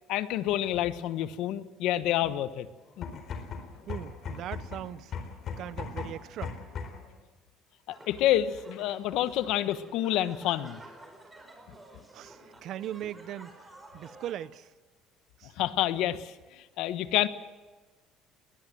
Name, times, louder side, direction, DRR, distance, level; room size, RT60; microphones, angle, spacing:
voice 1, 0.1-2.7 3.0-3.1 7.9-10.8 15.6-17.3, left 13 dB, 70° left, 1.2 m, -28 dB
sound 1, 2.9-7.1, left 6 dB, 45° left, 4.3 m, -38 dB
voice 2, 3.9-5.1 5.6-6.6 12.1-13.5 13.9-14.7 15.4-15.5, right 11 dB, 55° right, 0.8 m, -39 dB
sound 2, 7.9-14.3, right 2 dB, 15° right, 4.6 m, -52 dB
21.0 x 20.0 x 7.6 m
cardioid pair, 130°, 0 cm